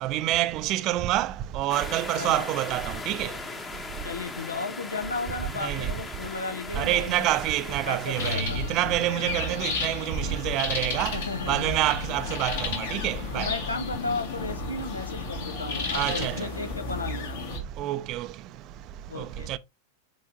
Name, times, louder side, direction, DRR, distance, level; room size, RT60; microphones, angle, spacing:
voice 1, 0.0-3.3 5.6-5.9 6.8-11.2 11.5-13.5 15.9-16.4 17.8-18.3 19.5-19.6, right 14 dB, 40° right, 0.6 m, -27 dB
sound 1, 1.7-8.4, left 4 dB, 20° left, 1.1 m, -38 dB
voice 2, 2.1-2.5 4.0-7.4 7.9-8.6 11.1-11.8 13.3-17.4 19.1-19.6, left 3 dB, 75° left, 1.1 m, -34 dB
sound 2, 8.2-17.6, left 4 dB, 60° left, 2.2 m, -32 dB
9.0 x 4.1 x 2.8 m
figure-of-eight pair, 90°, 0 cm